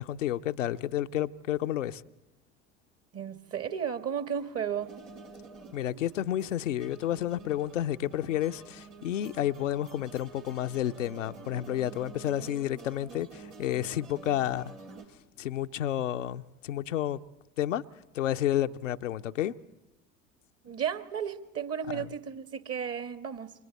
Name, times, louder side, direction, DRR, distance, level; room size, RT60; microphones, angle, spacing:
voice 1, 0.0-2.0 5.7-14.7 15.4-17.2 17.6-17.8 18.1-19.6 21.9-22.1, left 12 dB, 80° left, 0.6 m, -31 dB
voice 2, 3.1-4.9 20.6-23.5, right 8 dB, 40° right, 1.7 m, -34 dB
sound 1, 4.8-15.1, right 4 dB, 80° right, 2.3 m, -49 dB
28.5 x 24.0 x 4.2 m
figure-of-eight pair, 60°, 37 cm